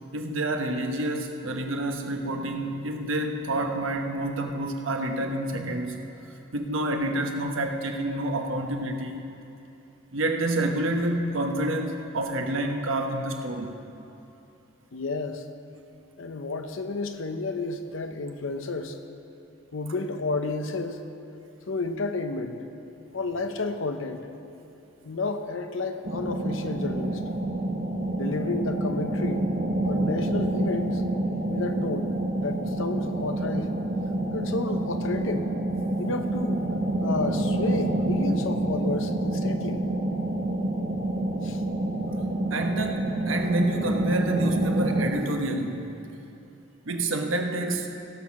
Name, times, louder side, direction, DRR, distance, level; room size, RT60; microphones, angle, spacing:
voice 1, 0.1-6.0 6.5-9.2 10.1-13.8 42.5-45.9 46.9-47.9, right 1 dB, 85° right, 3 dB, 1.1 m, -28 dB
voice 2, 14.9-15.4 16.2-19.0 19.7-21.0 21.7-22.6 23.1-24.3 25.0-27.2 28.1-29.5 29.8-31.0 31.5-33.7 34.3-35.5 36.0-36.6 37.0-39.8 41.4-41.6, left 3 dB, 80° left, 7 dB, 0.8 m, -31 dB
sound 1, 26.0-45.1, right 1 dB, 45° right, 1.0 m, -28 dB
17.0 x 6.4 x 6.0 m, 2.9 s
head